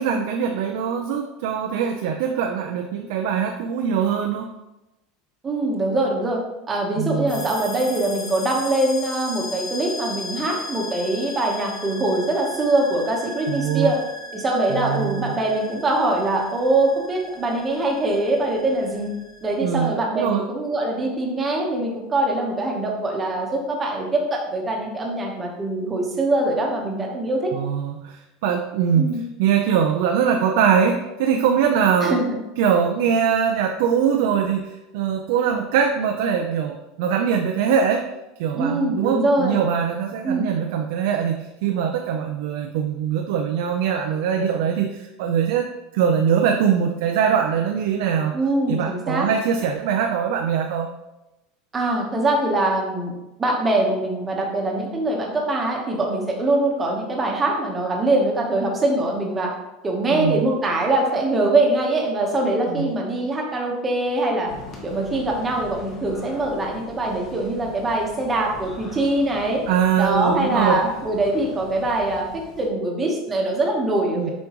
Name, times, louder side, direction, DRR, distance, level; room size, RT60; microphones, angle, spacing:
voice 1, 0.0-4.5 7.0-7.4 13.5-13.9 14.7-15.3 19.6-20.5 27.5-29.1 29.4-38.1 38.4-45.7 45.9-48.4 48.7-50.9 60.1-60.5 62.7-62.9 69.7-70.8 74.2-74.3, right 7 dB, 65° right, 3 dB, 0.5 m, -22 dB
voice 2, 5.4-6.4 6.7-14.0 14.3-19.1 19.4-27.5 28.9-29.2 32.0-32.4 38.5-39.6 40.2-40.5 48.3-49.3 51.7-53.1 53.4-59.5 59.8-64.5 64.8-69.6 70.0-74.3, right 2 dB, 15° right, -1 dB, 1.1 m, -23 dB
sound 1, 7.3-19.6, left 3 dB, 45° left, 2.2 m, -37 dB
sound 2, 64.5-72.7, left 3 dB, 30° left, 1.2 m, -42 dB
7.0 x 5.2 x 3.0 m, 0.97 s
supercardioid pair, 160°, 0 cm